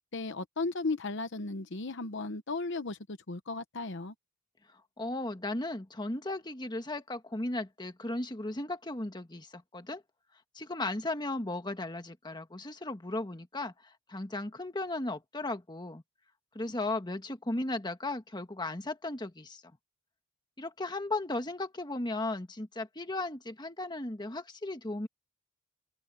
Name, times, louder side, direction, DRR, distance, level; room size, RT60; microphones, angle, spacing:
voice 1, 0.1-4.1, left 3 dB, 60° left, 0.9 m, -35 dB
voice 2, 4.7-10.0 10.5-16.0 16.5-19.6 20.6-25.1, left 2 dB, 20° left, 1.5 m, -36 dB
head